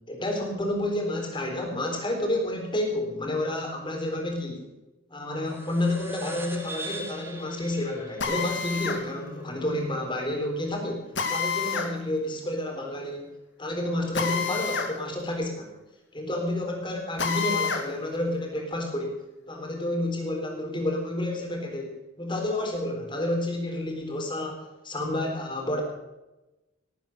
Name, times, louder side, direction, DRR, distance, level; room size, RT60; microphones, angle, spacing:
voice 1, 0.1-4.7 5.1-13.3 13.6-15.7 16.1-25.8, left 1 dB, 25° left, 2 dB, 3.9 m, -30 dB
sound 1, 5.5-10.4, right 2 dB, 10° right, 2.1 m, -43 dB
Drill, 8.2-9.0 11.2-11.9 14.1-14.9 15.3-15.4 17.2-17.9, left 5 dB, 65° left, 2.3 m, -28 dB
19.0 x 9.3 x 6.6 m, 1.0 s
head